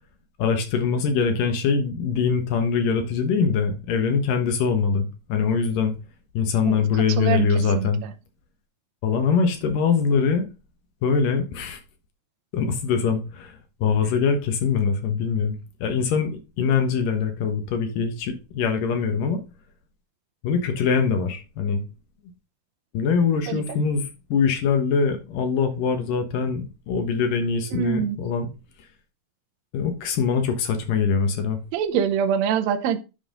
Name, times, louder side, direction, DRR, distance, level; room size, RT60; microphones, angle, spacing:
voice 1, 0.4-5.9 6.3-8.0 9.0-10.4 11.0-11.8 12.5-13.5 13.8-19.4 20.4-21.8 22.9-28.5 29.7-31.6, left 6 dB, 75° left, 2.9 m, -23 dB
voice 2, 6.7-7.5 7.7-8.1 23.5-23.6 27.7-28.2 31.7-33.0, right 8 dB, 70° right, 1.7 m, -25 dB
9.7 x 5.5 x 3.7 m
omnidirectional pair, 3.9 m